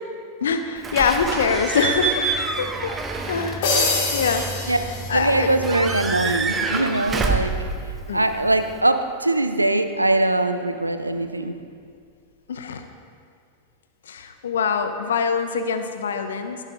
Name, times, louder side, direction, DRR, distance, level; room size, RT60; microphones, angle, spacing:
voice 1, 0.4-2.3 2.6-2.9 3.3-4.7 5.1-5.5 8.1-8.3 12.5-12.8 14.1-16.6, left 5 dB, 65° left, 8 dB, 0.9 m, -24 dB
Slam / Squeak / Alarm, 0.8-8.8, right 4 dB, 15° right, 1.0 m, -27 dB
sound 1, 3.6-5.7, left 3 dB, 50° left, 3.0 m, -25 dB
voice 2, 5.1-7.5 7.8-11.5, right 2 dB, 85° right, 9 dB, 0.7 m, -22 dB
16.0 x 7.5 x 5.0 m, 2.2 s
figure-of-eight pair, 90°, 0 cm